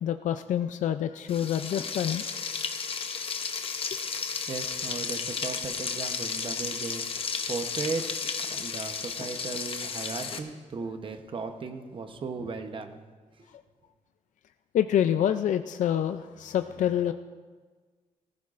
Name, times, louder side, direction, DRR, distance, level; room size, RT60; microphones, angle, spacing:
voice 1, 0.0-2.3 14.7-17.1, left 10 dB, 70° left, 9 dB, 0.4 m, -27 dB
Frying (food), 1.3-10.4, left 5 dB, 45° left, 0.8 m, -33 dB
voice 2, 4.5-7.1 7.5-8.2 8.5-13.0 13.4-13.5, right 4 dB, 40° right, 6 dB, 0.8 m, -36 dB
18.5 x 14.5 x 2.5 m, 1.4 s
wide cardioid pair, 165°, 13 cm